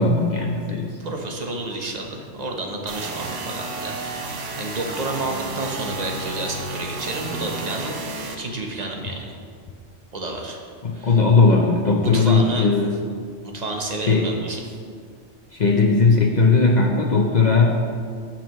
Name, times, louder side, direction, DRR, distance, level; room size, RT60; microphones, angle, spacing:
voice 1, 0.0-1.0 10.8-12.9 14.1-14.3 15.5-17.8, left 3 dB, 45° left, 0 dB, 0.8 m, -18 dB
voice 2, 1.0-8.1 8.4-9.4 10.1-10.6 10.9-11.2 12.0-12.7 13.4-14.6, right 2 dB, 35° right, 1 dB, 1.1 m, -30 dB
sound 1, 2.9-8.4, right 3 dB, 85° right, 1.3 m, -32 dB
16.5 x 5.8 x 3.1 m, 2.1 s
omnidirectional pair, 1.2 m